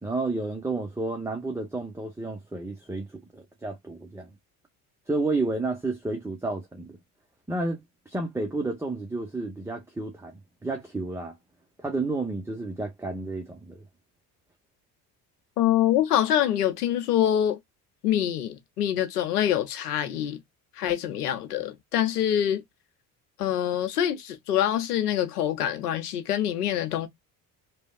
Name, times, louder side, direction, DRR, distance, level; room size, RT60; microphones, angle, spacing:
voice 1, 0.0-3.1 3.3-4.3 5.1-7.0 7.5-7.8 8.1-11.3 11.8-13.8, right 2 dB, 5° right, 0.8 m, -31 dB
voice 2, 15.6-17.6 18.0-20.4 20.8-22.6 23.4-27.1, left 11 dB, 90° left, 0.8 m, -25 dB
3.3 x 2.3 x 2.2 m
hypercardioid pair, 60°, 44 cm